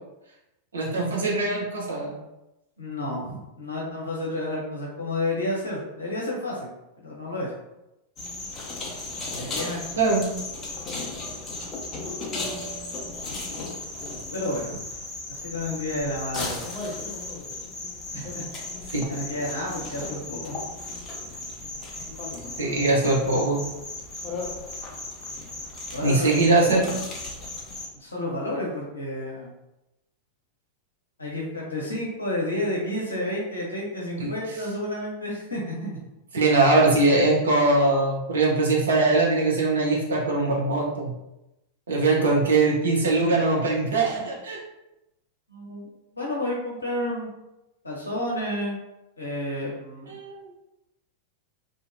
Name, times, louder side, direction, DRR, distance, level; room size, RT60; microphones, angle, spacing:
voice 1, 0.7-2.2 10.0-10.3 18.9-19.1 22.6-23.6 26.0-26.9 34.2-34.3 36.3-41.1 41.9-44.6 50.1-50.4, right 2 dB, 70° right, -3 dB, 0.6 m, -21 dB
voice 2, 2.8-6.7 7.0-7.5 9.3-10.2 14.3-14.8 15.3-16.6 18.1-18.4 19.1-20.6 25.9-27.0 27.9-29.5 31.2-36.0 45.5-45.9 46.1-47.3 47.8-48.8 49.2-50.2, left 1 dB, 80° left, -3 dB, 0.7 m, -31 dB
sound 1, 8.2-27.9, left 2 dB, 25° left, 0.5 m, -35 dB
2.5 x 2.1 x 2.5 m, 0.93 s
figure-of-eight pair, 90°, 0 cm